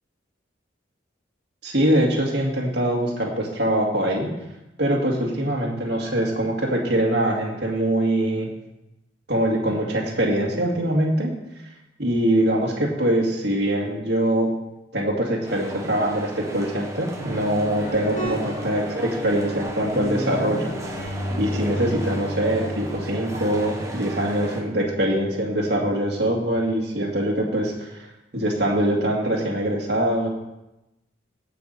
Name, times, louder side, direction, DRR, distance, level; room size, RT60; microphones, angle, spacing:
voice 1, 1.6-4.3 4.8-8.5 9.3-11.3 12.0-14.5 14.9-21.0 21.4-28.1 28.3-30.3, right 1 dB, 60° right, -1 dB, 2.2 m, -23 dB
sound 1, 15.4-24.6, equal, 15° right, 1.2 m, -36 dB
Guitar, 17.2-26.7, equal, 40° left, 2.8 m, -34 dB
17.0 x 6.1 x 4.2 m, 0.95 s
head